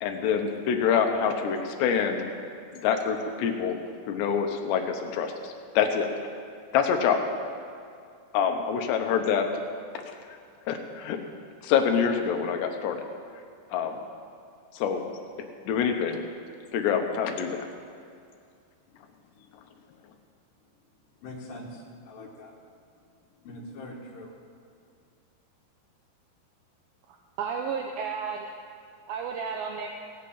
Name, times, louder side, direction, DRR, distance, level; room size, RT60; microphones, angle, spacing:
voice 1, 0.0-2.3 2.7-3.8 4.1-6.1 6.7-7.2 8.3-9.5 9.9-10.1 10.7-11.2 11.6-13.0 13.7-13.9 14.7-15.0 15.7-16.2 16.7-17.7, left 7 dB, 85° left, 5 dB, 3.2 m, -26 dB
voice 2, 21.2-22.5 23.4-24.3, left 1 dB, 65° left, -5 dB, 2.8 m, -42 dB
voice 3, 27.4-28.5 29.1-29.9, right 6 dB, 80° right, 2 dB, 2.3 m, -32 dB
17.5 x 6.6 x 8.5 m, 2.4 s
omnidirectional pair, 4.8 m